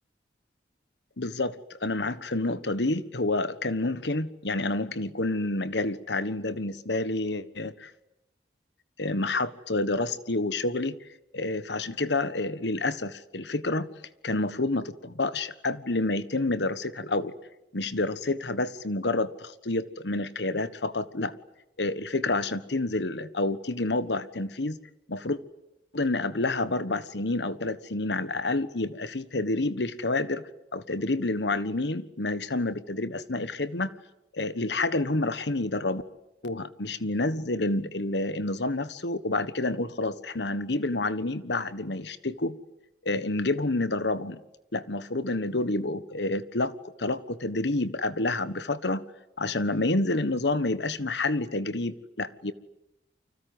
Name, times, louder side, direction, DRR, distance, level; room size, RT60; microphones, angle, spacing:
voice 1, 1.2-7.9 9.0-11.0 11.3-13.9 14.2-17.3 17.7-21.3 21.8-24.8 25.1-25.4 25.9-30.4 30.7-33.9 34.3-36.0 36.4-42.6 43.0-44.4 44.7-49.0 49.4-52.5, left 2 dB, 80° left, 14 dB, 1.4 m, -29 dB
30.0 x 25.0 x 8.0 m, 0.91 s
head